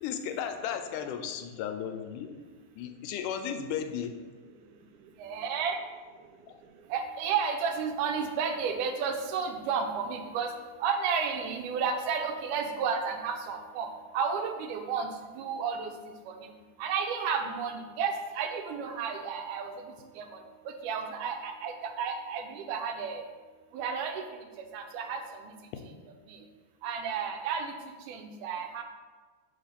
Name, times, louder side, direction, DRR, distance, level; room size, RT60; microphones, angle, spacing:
voice 1, 0.0-2.3 2.8-4.1 6.5-6.6, left 8 dB, 85° left, 7 dB, 2.1 m, -35 dB
voice 2, 5.2-5.8 6.9-10.5 10.8-13.9 14.1-15.1 15.3-15.9 16.3-16.5 16.8-20.4 20.7-23.2 23.7-24.2 24.7-25.2 26.3-26.4 26.8-27.7 28.1-28.8, right 6 dB, 85° right, 5 dB, 2.2 m, -32 dB
5.6 x 3.5 x 5.7 m, 1.4 s
omnidirectional pair, 3.6 m